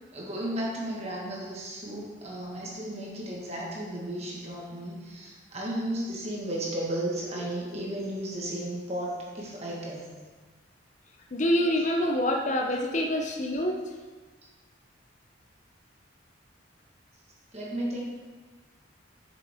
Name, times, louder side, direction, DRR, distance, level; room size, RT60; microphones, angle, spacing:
voice 1, 0.1-10.1 17.5-18.0, right 1 dB, 30° right, -3 dB, 1.5 m, -34 dB
voice 2, 11.3-13.8, left 1 dB, 35° left, 2 dB, 0.6 m, -26 dB
8.3 x 6.8 x 3.6 m, 1.4 s
head